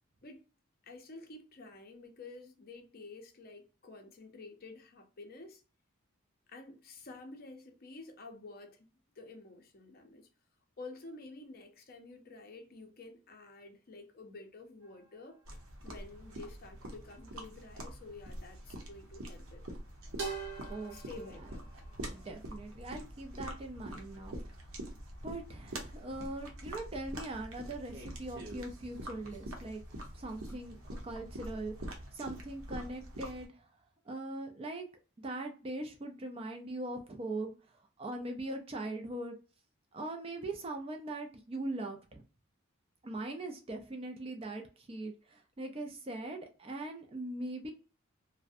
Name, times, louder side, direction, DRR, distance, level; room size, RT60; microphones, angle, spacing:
voice 1, 0.8-5.6 6.5-8.9 9.2-10.3 10.8-15.4 15.8-19.6 20.9-21.7, left 3 dB, 45° left, 0.5 m, -50 dB
sound 1, 14.8-15.9 19.1-19.4 20.2-22.7 23.4-23.9 24.8-25.9 26.4-27.4 27.8-29.5 29.7-30.5, right 4 dB, 55° right, 0.8 m, -47 dB
sound 2, 15.5-33.5, right 1 dB, 90° right, 0.7 m, -45 dB
voice 2, 20.7-21.5 22.1-24.7 25.2-29.8 30.1-33.8 34.0-34.9 35.2-39.4 39.9-42.2 43.0-47.7, right 2 dB, 25° right, 0.3 m, -41 dB
2.5 x 2.1 x 2.5 m
head